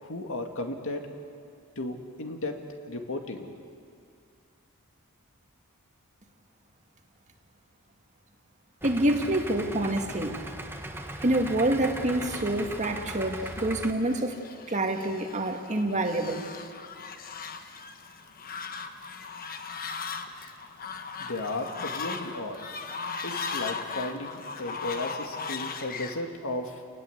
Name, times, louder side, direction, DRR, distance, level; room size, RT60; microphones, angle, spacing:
voice 1, 0.0-1.1 1.8-2.6 2.9-3.5 21.2-22.6 23.2-26.8, left 2 dB, 65° left, 4 dB, 2.4 m, -34 dB
Idling, 8.8-13.9, right 1 dB, 10° right, 1.5 m, -38 dB
voice 2, 8.8-10.4 11.2-14.4 14.7-16.5, right 1 dB, 35° right, 4 dB, 1.9 m, -27 dB
Fowl, 11.4-26.2, left 5 dB, 40° left, 1.3 m, -38 dB
29.5 x 19.5 x 8.2 m, 2.3 s
head